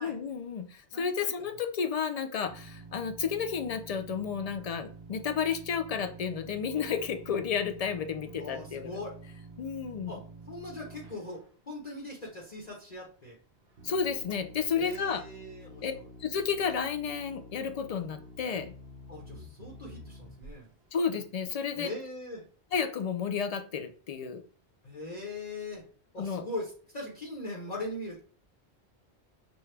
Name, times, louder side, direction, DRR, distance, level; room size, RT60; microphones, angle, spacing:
voice 1, 0.0-8.9 9.6-10.1 13.8-15.2 15.8-15.9 16.2-18.7 20.9-21.9 22.7-24.4 26.2-26.4, left 6 dB, 60° left, 8 dB, 0.4 m, -32 dB
voice 2, 0.9-1.3 8.4-9.2 10.1-13.4 14.7-16.1 19.1-20.7 21.7-22.4 24.8-25.8 26.1-28.2, left 2 dB, 40° left, -2 dB, 1.0 m, -40 dB
sound 1, 2.5-11.4 12.1-12.2 12.6-12.7 13.8-20.6 21.0-21.2, right 2 dB, 65° right, 0.9 m, -49 dB
6.1 x 2.3 x 3.2 m, 0.43 s
omnidirectional pair, 1.1 m